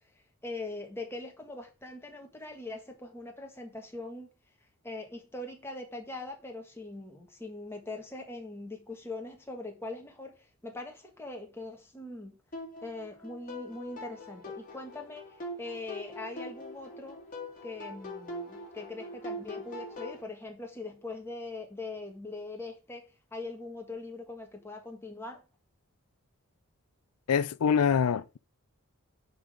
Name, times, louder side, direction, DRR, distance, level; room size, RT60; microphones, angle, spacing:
voice 1, 0.4-4.3 4.8-12.4 12.8-15.2 15.6-17.2 17.6-25.4, left 2 dB, 10° left, 1.6 m, -41 dB
sound 1, 12.5-20.2, left 1 dB, 35° left, 2.4 m, -42 dB
voice 2, 27.3-28.4, left 7 dB, 85° left, 0.4 m, -25 dB
10.5 x 4.0 x 5.0 m
head